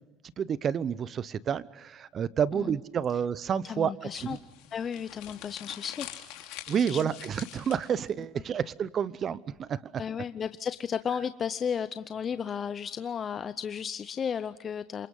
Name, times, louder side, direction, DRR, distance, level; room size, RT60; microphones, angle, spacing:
voice 1, 0.4-3.9 6.7-10.0, right 8 dB, 40° right, 18 dB, 0.9 m, -29 dB
voice 2, 3.6-4.4 4.7-6.1 6.9-7.2 10.0-15.1, left 7 dB, 35° left, 13 dB, 0.7 m, -34 dB
sound 1, 4.1-8.1, left 13 dB, 75° left, 3.0 m, -45 dB
27.5 x 24.5 x 5.5 m, 1.0 s
supercardioid pair, 95°, 0 cm